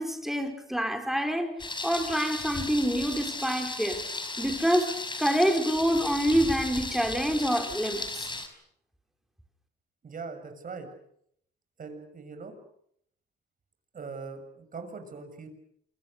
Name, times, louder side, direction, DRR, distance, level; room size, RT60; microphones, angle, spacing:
voice 1, 0.0-1.5 1.8-4.0 4.4-8.3, equal, ahead, 4.8 m, -27 dB
Thunder, 1.6-8.5, left 2 dB, 25° left, 4.9 m, -35 dB
voice 2, 10.0-10.9 11.8-12.5 13.9-15.5, right 4 dB, 45° right, 6.9 m, -41 dB
28.5 x 24.0 x 6.7 m
cardioid pair, 90°, 20 cm